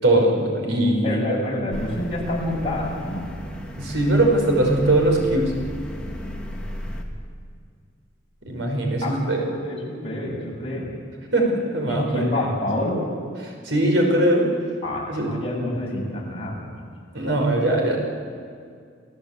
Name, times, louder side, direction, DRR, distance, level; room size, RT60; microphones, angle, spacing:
voice 1, 0.0-1.4 3.8-5.6 8.4-9.5 11.3-12.3 13.4-14.5 15.1-15.3 17.1-18.0, right 1 dB, 75° right, 1 dB, 5.4 m, -21 dB
voice 2, 1.0-3.3 9.0-10.9 11.9-13.1 14.8-16.8, left 1 dB, 30° left, -3 dB, 6.9 m, -28 dB
sound 1, 1.7-7.0, equal, 5° left, 2.6 m, -34 dB
28.5 x 17.5 x 8.5 m, 2.2 s
head